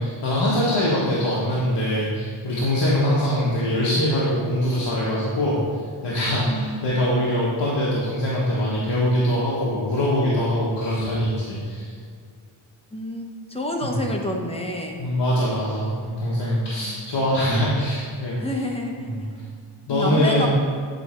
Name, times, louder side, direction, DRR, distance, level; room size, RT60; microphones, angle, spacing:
voice 1, 0.0-5.6 6.0-11.9 13.8-14.0 15.0-18.4 19.0-19.2 19.9-20.5, left 1 dB, 55° left, -7 dB, 1.5 m, -23 dB
voice 2, 6.5-7.0 12.9-15.0 16.8-17.1 18.4-19.1 19.9-20.5, left 1 dB, 10° left, 1 dB, 1.0 m, -29 dB
9.3 x 4.4 x 4.5 m, 2.1 s
wide cardioid pair, 100°, 49 cm